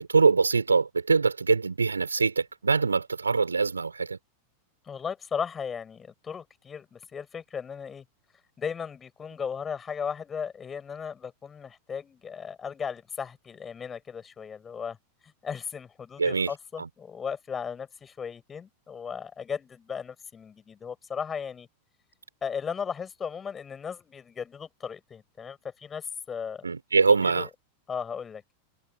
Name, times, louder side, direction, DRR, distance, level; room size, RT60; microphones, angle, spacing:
voice 1, 0.0-4.2 16.2-16.5 16.8-16.9 26.6-27.5, right 4 dB, 75° right, 4.2 m, -23 dB
voice 2, 4.9-8.0 8.6-15.0 15.2-21.7 22.4-26.7 27.1-27.5 27.9-28.4, left 6 dB, 20° left, 7.6 m, -36 dB
figure-of-eight pair, 90°, 0 cm